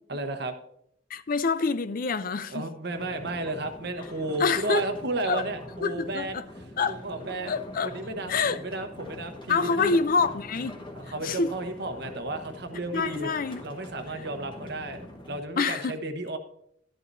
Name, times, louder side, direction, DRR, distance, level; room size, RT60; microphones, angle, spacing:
voice 1, 0.1-0.5 2.5-6.3 6.9-7.5 7.8-10.0 10.9-13.3 13.6-16.4, right 2 dB, 65° right, 1.1 m, -33 dB
voice 2, 1.1-2.6 4.4-4.9 5.3-5.4 5.8-6.4 6.8-7.0 7.5-7.9 8.3-8.6 9.5-10.8 11.2-11.5 12.9-13.6 15.6-16.0, left 4 dB, 50° left, 0.5 m, -26 dB
sound 1, 2.9-15.4, left 1 dB, 25° left, 1.4 m, -44 dB
11.5 x 11.0 x 2.6 m
head